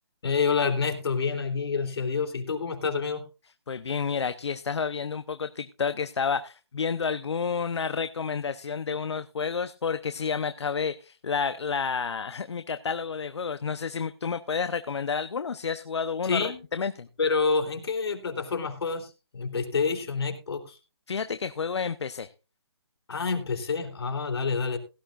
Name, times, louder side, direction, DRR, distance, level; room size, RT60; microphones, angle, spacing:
voice 1, 0.2-3.2 16.2-16.6 17.2-20.8 23.1-24.8, left 5 dB, 70° left, 4 dB, 3.4 m, -28 dB
voice 2, 3.7-16.4 16.7-17.1 21.1-22.3, left 6 dB, 85° left, 12 dB, 0.8 m, -30 dB
17.0 x 13.0 x 2.5 m, 0.30 s
hypercardioid pair, 165°, 14 cm